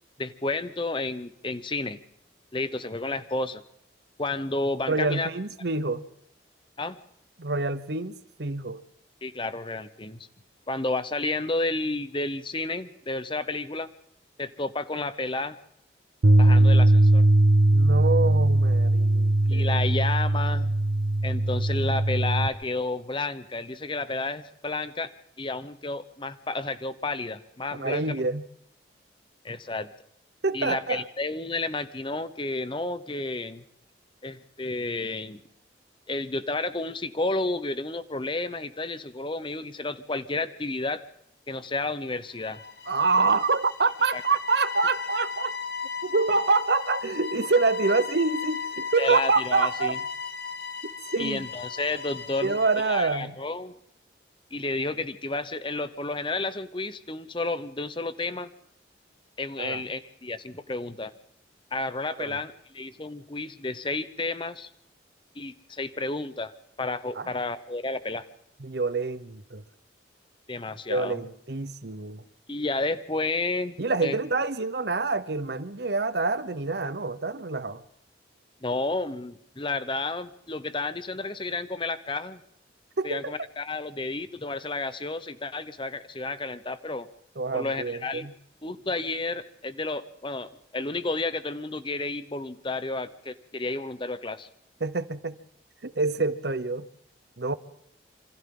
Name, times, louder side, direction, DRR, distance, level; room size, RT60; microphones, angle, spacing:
voice 1, 0.2-2.0 2.5-3.6 4.2-5.3 6.8-7.0 9.2-10.3 10.7-13.9 14.4-15.6 16.4-17.2 19.5-20.7 21.2-25.1 25.4-28.2 29.4-29.9 30.5-33.6 34.2-35.4 36.1-41.0 41.5-42.6 44.1-44.2 49.0-50.0 51.2-52.6 52.8-53.7 54.5-58.5 59.4-61.1 61.7-64.7 65.4-66.5 66.8-68.2 70.5-71.2 72.5-74.2 78.6-82.4 83.0-87.1 87.5-88.3 88.6-94.5, left 2 dB, 25° left, 0.9 m, -31 dB
voice 2, 4.9-6.0 7.4-8.1 8.4-8.8 17.7-19.8 27.7-28.4 30.4-31.0 42.9-45.5 46.0-50.0 51.1-51.5 52.4-53.3 59.6-59.8 62.2-62.4 67.2-67.3 68.6-69.6 70.9-72.2 73.8-77.8 83.0-83.3 87.4-88.3 94.8-95.4 95.8-96.9 97.4-97.5, right 3 dB, 60° right, 0.9 m, -26 dB
Bass guitar, 16.2-22.5, right 1 dB, 80° right, 1.1 m, -20 dB
sound 1, 42.4-53.1, left 5 dB, 55° left, 1.6 m, -36 dB
27.5 x 26.0 x 3.9 m
head